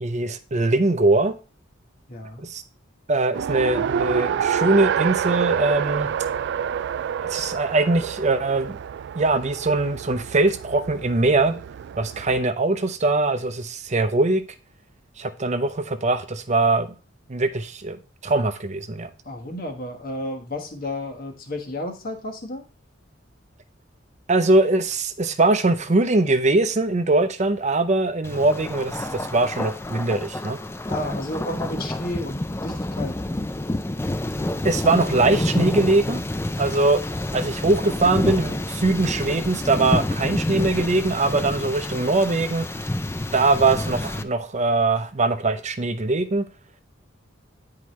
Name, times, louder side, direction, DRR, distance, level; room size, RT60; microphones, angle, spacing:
voice 1, 0.0-1.3 2.4-2.6 3.1-6.1 7.3-8.8 9.1-11.6 12.0-14.4 15.2-16.9 17.3-18.0 18.2-19.1 24.3-30.6 34.6-36.2 36.6-37.0 37.3-42.7 43.3-46.4, right 2 dB, 35° right, 0.7 m, -21 dB
voice 2, 2.1-2.5 19.2-22.6 30.9-33.4, left 1 dB, 50° left, 1.4 m, -32 dB
Race car auto racing, 3.3-12.4, right 8 dB, 60° right, 0.3 m, -28 dB
Thunder, 28.2-44.2, left 1 dB, 15° left, 0.4 m, -28 dB
9.6 x 4.8 x 3.1 m
head